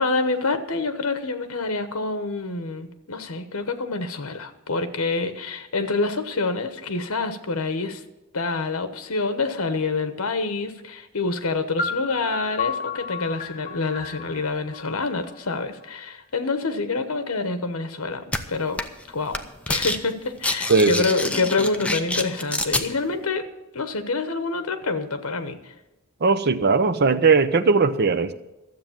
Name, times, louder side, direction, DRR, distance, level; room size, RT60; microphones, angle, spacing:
voice 1, 0.0-8.0 8.3-18.8 19.1-19.4 19.7-23.5 23.7-25.7, left 3 dB, 75° left, 9 dB, 1.1 m, -27 dB
sound 1, 11.8-15.6, left 5 dB, 35° left, 1.5 m, -32 dB
sound 2, 18.3-18.4 18.8-19.0 19.3-20.0 20.3-22.9, left 2 dB, 5° left, 0.6 m, -26 dB
voice 2, 20.7-21.0 26.2-28.3, right 4 dB, 50° right, 11 dB, 0.7 m, -19 dB
12.5 x 7.8 x 7.2 m, 0.99 s
head